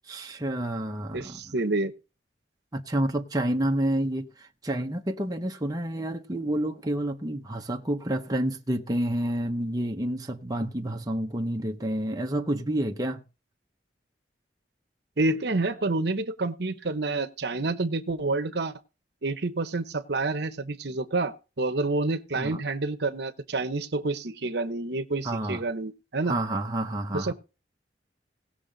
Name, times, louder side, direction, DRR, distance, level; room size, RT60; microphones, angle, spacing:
voice 1, 0.1-1.4 2.7-13.2 22.4-22.6 25.2-25.6 26.3-27.3, right 1 dB, 20° right, 0.9 m, -29 dB
voice 2, 1.1-1.9 15.2-18.7 19.2-26.3 27.1-27.3, right 2 dB, 65° right, 1.0 m, -28 dB
18.5 x 6.5 x 4.0 m
head